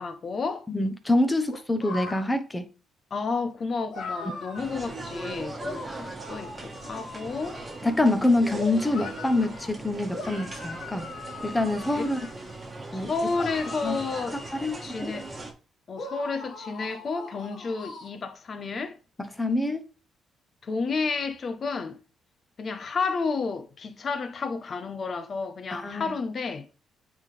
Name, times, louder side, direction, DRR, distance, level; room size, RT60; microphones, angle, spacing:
voice 1, 0.0-0.7 3.1-7.6 12.0-12.1 12.9-14.4 14.8-15.3 15.9-19.0 20.6-22.0 22.6-26.7, left 4 dB, 45° left, 0.9 m, -31 dB
voice 2, 0.7-2.7 4.2-4.3 7.8-11.1 11.4-12.2 12.9-13.1 13.8-14.0 14.6-14.7 15.0-15.2 19.2-19.8 25.7-26.1, left 2 dB, 15° left, 0.9 m, -25 dB
sound 1, 1.5-2.2 3.9-4.8 5.6-8.1 8.5-9.7 10.1-12.5 13.4-15.3 16.0-18.1, left 3 dB, 60° left, 1.6 m, -40 dB
sound 2, 4.6-15.5, right 2 dB, 25° right, 1.3 m, -39 dB
8.8 x 3.6 x 3.3 m
cardioid pair, 90°, 0 cm